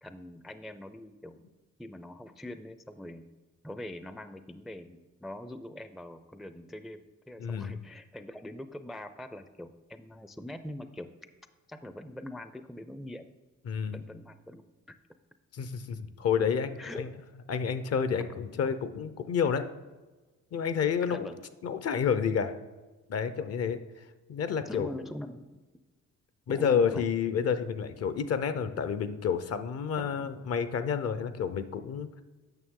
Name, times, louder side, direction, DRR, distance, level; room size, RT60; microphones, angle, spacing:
voice 1, 0.0-1.4 1.8-3.3 3.6-7.0 7.3-11.1 11.7-13.3 13.9-14.6 14.9-15.0 16.8-17.0 21.1-21.4 24.7-25.6 26.5-27.1 29.9-30.3, left 1 dB, ahead, 10 dB, 0.4 m, -43 dB
voice 2, 7.4-7.7 13.7-14.0 15.5-17.1 17.5-19.7 20.5-21.3 21.6-22.5 23.1-23.8 24.3-24.9 26.5-32.1, left 7 dB, 55° left, 11 dB, 0.7 m, -29 dB
9.0 x 6.2 x 3.7 m, 1.3 s
cardioid pair, 90°, 30 cm